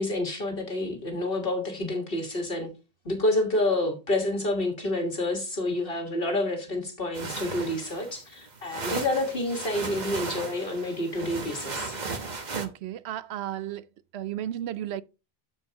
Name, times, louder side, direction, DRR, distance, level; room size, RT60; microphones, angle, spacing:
voice 1, 0.0-2.7 3.1-12.0, left 1 dB, 60° left, 1.8 m, -28 dB
sound 1, 7.1-12.7, right 4 dB, 45° right, 1.2 m, -36 dB
voice 2, 12.5-13.8 14.1-15.0, right 11 dB, 80° right, 0.8 m, -33 dB
13.0 x 4.6 x 2.8 m
omnidirectional pair, 1.1 m